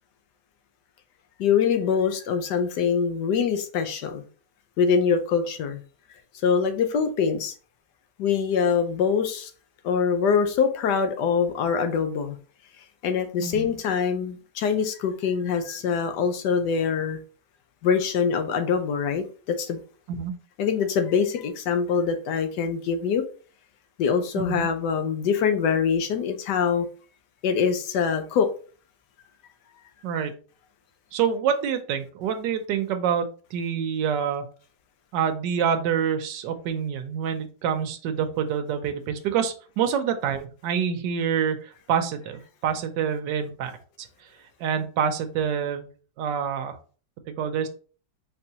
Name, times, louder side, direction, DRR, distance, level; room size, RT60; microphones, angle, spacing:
voice 1, 1.4-4.2 4.8-5.8 6.4-7.5 8.2-9.5 9.8-12.4 13.0-17.2 17.8-19.2 19.6-19.8 20.6-23.2 24.0-26.9 27.4-28.5, left 6 dB, 75° left, 1.3 m, -24 dB
voice 2, 13.4-13.7 20.1-20.3 24.4-24.7 30.0-30.4 31.1-34.4 35.1-43.7 44.6-45.9 46.2-46.8 47.3-47.7, right 7 dB, 85° right, 1.3 m, -27 dB
4.5 x 3.6 x 2.8 m
omnidirectional pair, 1.8 m